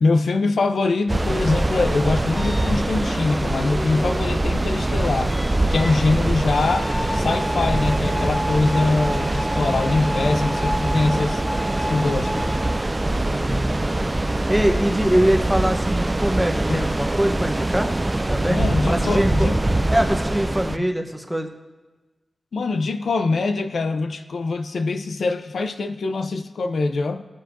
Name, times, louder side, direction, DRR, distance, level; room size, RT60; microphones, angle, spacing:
voice 1, 0.0-5.4 5.7-11.4 11.9-12.5 16.7-16.8 18.5-19.6 20.8-20.9 22.5-27.2, left 3 dB, 85° left, 8 dB, 0.5 m, -23 dB
sound 1, 1.1-20.8, right 1 dB, 20° right, 0.3 m, -23 dB
sound 2, 2.4-12.7, equal, 35° left, 3.0 m, -32 dB
voice 2, 13.3-14.1 14.5-17.9 18.3-18.6 18.9-19.6 19.9-21.5, right 1 dB, 5° right, 3 dB, 0.9 m, -23 dB
19.0 x 7.4 x 2.6 m, 1.2 s
wide cardioid pair, 115°, 0 cm